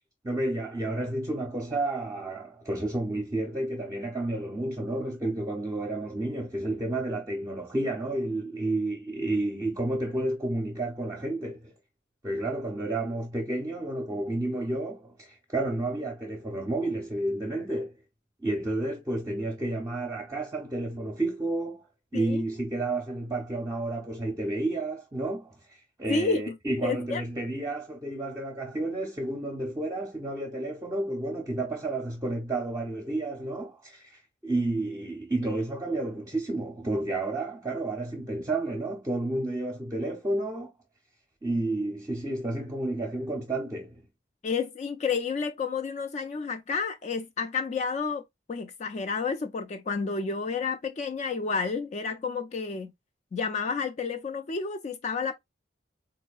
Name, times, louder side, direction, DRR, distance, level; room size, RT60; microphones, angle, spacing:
voice 1, 0.2-11.7 12.2-17.9 18.4-21.8 22.1-40.7 41.4-44.0, right 2 dB, 20° right, 0.6 m, -31 dB
voice 2, 22.1-22.4 26.1-26.5 26.8-27.2 44.4-48.2 48.5-52.9 53.3-55.3, left 5 dB, 35° left, 0.3 m, -30 dB
3.9 x 2.6 x 2.3 m
head